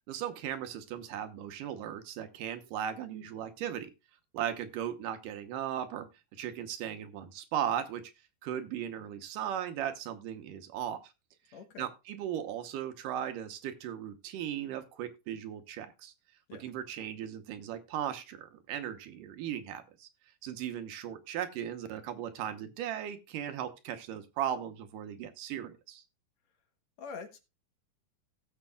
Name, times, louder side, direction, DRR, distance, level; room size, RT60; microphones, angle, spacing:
voice 1, 0.1-3.9 4.3-6.1 6.3-8.0 8.4-11.0 11.8-16.1 16.6-20.1 20.4-26.0, right 10 dB, 85° right, 2.6 m, -37 dB
voice 2, 11.5-11.9 16.5-16.6 27.0-27.4, left 5 dB, 65° left, 2.2 m, -44 dB
17.0 x 7.4 x 2.3 m
omnidirectional pair, 3.8 m